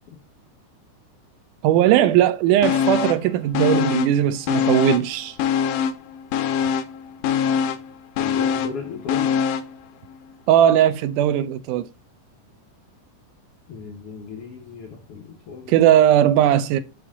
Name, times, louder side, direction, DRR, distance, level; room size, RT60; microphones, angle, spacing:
voice 1, 1.6-5.4 10.5-11.9 15.7-16.8, right 11 dB, 85° right, 2.1 m, -18 dB
sound 1, 2.6-3.3 3.5-5.1 5.4-9.8 10.1-10.2, left 7 dB, 85° left, 2.1 m, -23 dB
voice 2, 8.2-9.3 13.7-15.8, left 5 dB, 65° left, 1.5 m, -36 dB
9.0 x 3.2 x 3.6 m
omnidirectional pair, 3.7 m